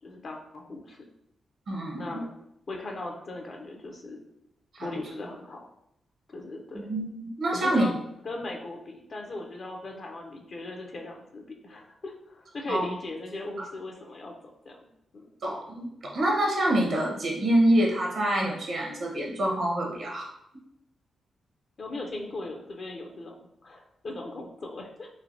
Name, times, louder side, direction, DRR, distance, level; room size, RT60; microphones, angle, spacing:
voice 1, 0.0-1.0 2.0-2.3 2.7-4.2 4.8-5.7 6.3-6.9 7.5-8.0 8.2-14.4 14.6-14.9 15.1-15.3 21.8-25.1, left 2 dB, 55° left, 2 dB, 0.5 m, -38 dB
voice 2, 1.7-2.2 4.7-4.9 6.7-7.9 12.7-12.9 15.4-20.3, right 1 dB, 65° right, -1 dB, 0.8 m, -26 dB
3.2 x 2.4 x 2.6 m, 0.78 s
hypercardioid pair, 40°, 0 cm